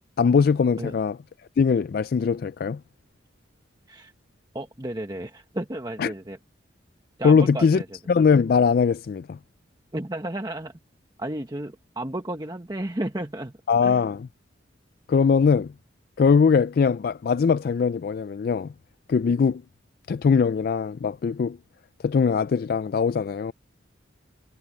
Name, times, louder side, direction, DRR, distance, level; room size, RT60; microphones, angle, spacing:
voice 1, 0.2-1.2 1.6-2.8 6.0-6.1 7.2-7.8 8.1-9.4 13.7-14.3 15.1-15.7 16.2-18.7 19.1-19.6 20.1-21.6 22.0-23.5, left 5 dB, 50° left, 0.3 m, -21 dB
voice 2, 4.5-6.4 7.2-7.8 9.9-10.8 11.2-13.5 13.8-14.1, right 1 dB, 20° right, 1.1 m, -33 dB
head